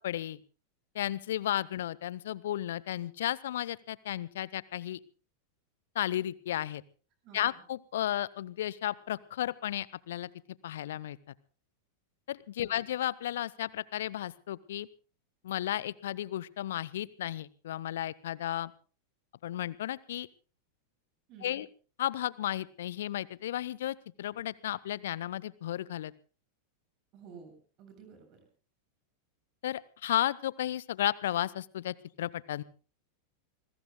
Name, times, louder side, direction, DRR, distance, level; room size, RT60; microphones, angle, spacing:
voice 1, 0.0-0.4 0.9-5.0 5.9-6.8 7.3-10.3 10.6-11.2 12.3-14.9 15.4-18.7 19.4-20.3 21.4-21.7 22.0-26.1 29.6-32.6, left 12 dB, 60° left, 21 dB, 0.7 m, -33 dB
voice 2, 7.2-7.6 12.6-12.8 21.3-21.6 27.1-28.4, right 6 dB, 40° right, 5 dB, 7.7 m, -52 dB
28.0 x 21.5 x 2.2 m, 0.38 s
figure-of-eight pair, 90°, 0 cm